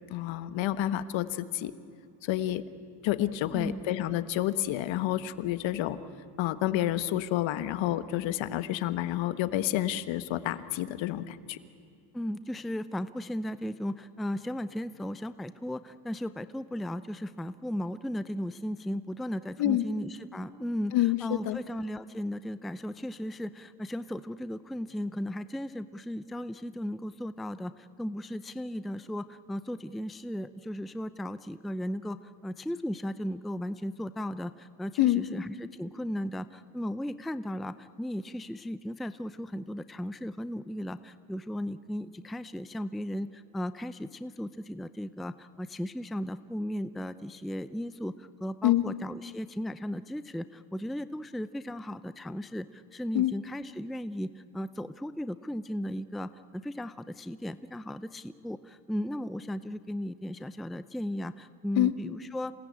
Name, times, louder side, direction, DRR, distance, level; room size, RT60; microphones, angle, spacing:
voice 1, 0.1-1.7 2.2-2.6 3.0-6.0 6.4-11.6 19.6-19.8 20.9-21.6 35.0-35.2 48.6-48.8 53.1-53.3 61.8-61.9, left 14 dB, 65° left, 13 dB, 1.4 m, -28 dB
voice 2, 3.5-3.9 12.1-62.5, equal, ahead, 14 dB, 0.5 m, -36 dB
27.5 x 18.0 x 8.7 m, 2.6 s
supercardioid pair, 95°, 50 cm